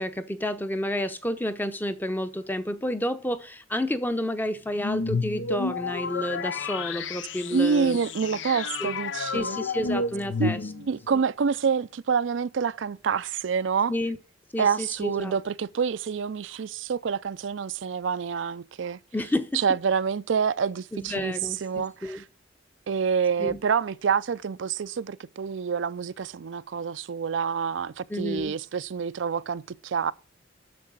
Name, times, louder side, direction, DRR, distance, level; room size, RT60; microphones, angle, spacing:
voice 1, 0.0-8.0 8.8-8.9 9.3-10.6 13.9-14.2 14.5-15.4 19.1-19.6 20.9-22.2 23.4-23.6 28.1-28.5, left 1 dB, 10° left, 0.6 m, -30 dB
sound 1, 4.8-11.1, left 4 dB, 80° left, 0.6 m, -31 dB
voice 2, 7.5-9.6 10.4-13.9 14.6-19.0 19.5-22.2 22.9-30.1, right 6 dB, 85° right, 0.4 m, -27 dB
7.5 x 6.6 x 6.1 m
head